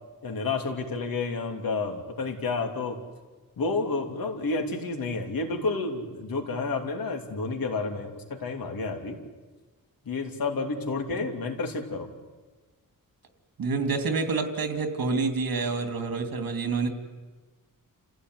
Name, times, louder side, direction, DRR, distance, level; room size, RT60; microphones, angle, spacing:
voice 1, 0.2-3.0 3.6-9.2 10.0-12.1, left 3 dB, 80° left, 4 dB, 3.2 m, -30 dB
voice 2, 13.6-16.9, right 4 dB, 90° right, 7 dB, 2.8 m, -27 dB
29.0 x 16.0 x 9.6 m, 1.3 s
wide cardioid pair, 160°, 34 cm